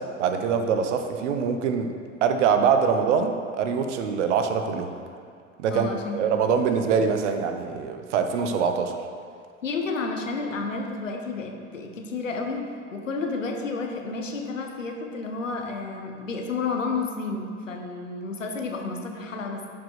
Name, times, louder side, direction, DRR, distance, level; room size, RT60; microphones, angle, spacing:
voice 1, 0.0-1.9 2.2-4.9 5.6-5.9 6.1-9.0, right 6 dB, 70° right, 7 dB, 0.9 m, -24 dB
voice 2, 5.7-6.2 9.6-19.7, left 4 dB, 85° left, 2 dB, 1.1 m, -31 dB
10.5 x 5.3 x 4.8 m, 2.2 s
figure-of-eight pair, 75°, 37 cm